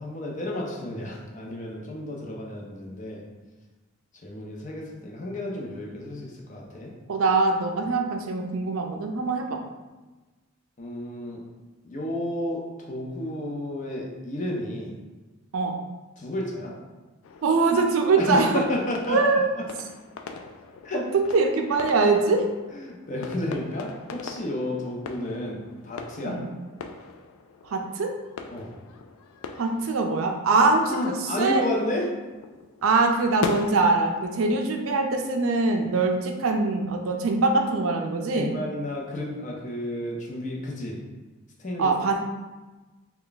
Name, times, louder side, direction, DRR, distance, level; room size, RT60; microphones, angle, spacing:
voice 1, 0.0-3.2 4.2-6.9 10.8-11.4 11.8-14.9 16.2-16.7 18.2-19.6 20.8-21.0 22.7-26.4 28.5-28.7 30.8-32.1 38.3-41.0 41.6-41.9, left 1 dB, 35° left, -2 dB, 0.6 m, -31 dB
voice 2, 7.1-9.6 15.5-15.7 17.4-18.6 19.1-19.5 21.3-22.4 26.2-26.4 27.7-28.1 29.6-31.6 32.8-38.6 41.8-42.3, right 3 dB, 80° right, 3 dB, 0.4 m, -23 dB
sound 1, 17.2-34.7, left 4 dB, 85° left, 0.3 m, -41 dB
3.3 x 2.3 x 3.9 m, 1.2 s
head